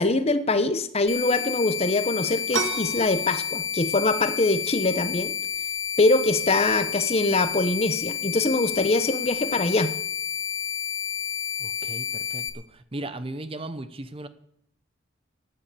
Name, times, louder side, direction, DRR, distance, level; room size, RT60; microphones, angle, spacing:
voice 1, 0.0-5.3 6.0-9.9, left 2 dB, 30° left, 11 dB, 0.9 m, -23 dB
sound 1, 1.1-12.5, left 8 dB, 70° left, 2.0 m, -30 dB
sound 2, 2.5-11.9, right 4 dB, 75° right, 1.6 m, -39 dB
voice 2, 11.6-14.3, right 1 dB, 30° right, 12 dB, 0.8 m, -37 dB
14.5 x 10.0 x 6.8 m, 0.71 s
head